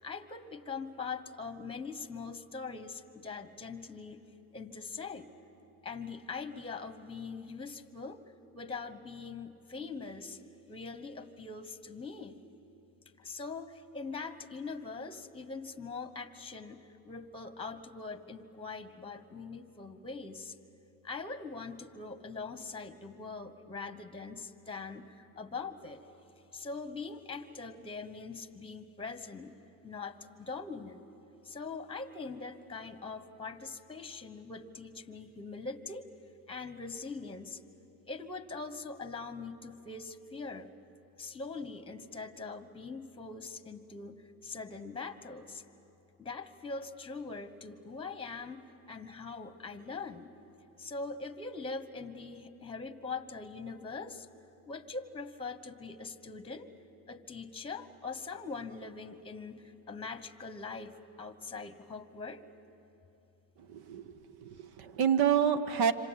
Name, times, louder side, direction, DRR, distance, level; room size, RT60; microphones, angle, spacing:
voice 1, 0.0-4.2 4.5-5.3 5.8-8.2 8.5-10.4 10.7-12.4 13.2-20.6 21.0-26.0 26.5-29.6 29.8-31.0 31.4-36.1 36.5-37.6 38.1-40.7 41.2-45.6 46.2-50.3 50.8-54.3 54.7-56.7 57.1-62.4, left 4 dB, 15° left, 11 dB, 1.2 m, -42 dB
voice 2, 63.7-64.0 64.3-65.9, right 8 dB, 60° right, 12 dB, 1.3 m, -28 dB
26.5 x 26.0 x 8.3 m, 2.9 s
cardioid pair, 105°, 42 cm